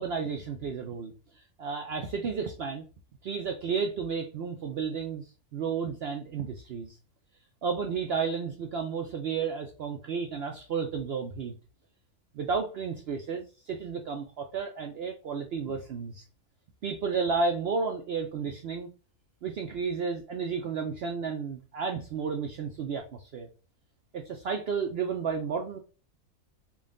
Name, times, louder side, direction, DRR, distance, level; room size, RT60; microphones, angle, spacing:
voice 1, 0.0-2.8 3.2-5.2 5.5-7.0 7.6-11.5 12.3-16.2 16.8-18.9 19.4-23.5 24.1-25.8, right 5 dB, 70° right, 4 dB, 0.6 m, -32 dB
3.7 x 2.5 x 3.7 m, 0.34 s
omnidirectional pair, 1.6 m